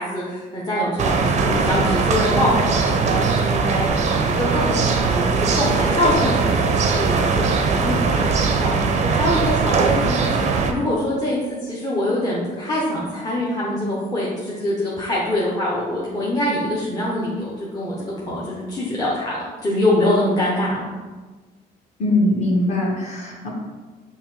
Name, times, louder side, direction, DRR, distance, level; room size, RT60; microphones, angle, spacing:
voice 1, 0.0-3.9 4.1-8.2 8.6-8.8 9.0-19.4 19.6-20.8, left 1 dB, 25° left, -6 dB, 0.7 m, -24 dB
sound 1, 1.0-10.7, right 4 dB, 45° right, 0.5 m, -20 dB
voice 2, 22.0-23.5, left 1 dB, 40° left, -3 dB, 1.2 m, -21 dB
5.4 x 2.2 x 3.1 m, 1.3 s
cardioid pair, 110°, 17 cm